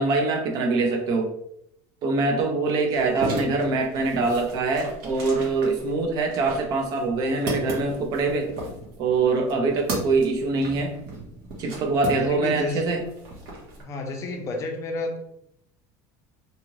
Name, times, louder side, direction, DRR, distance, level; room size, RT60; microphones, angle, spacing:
voice 1, 0.0-1.3 2.0-8.5 9.0-10.9 11.6-13.0, right 3 dB, 50° right, 3 dB, 0.6 m, -24 dB
sound 1, 3.0-12.7 13.0-13.8, right 2 dB, 65° right, 1.1 m, -35 dB
voice 2, 12.1-12.8 13.8-15.2, left 3 dB, 35° left, 4 dB, 0.5 m, -30 dB
2.7 x 2.4 x 3.0 m, 0.76 s
cardioid pair, 140°, 9 cm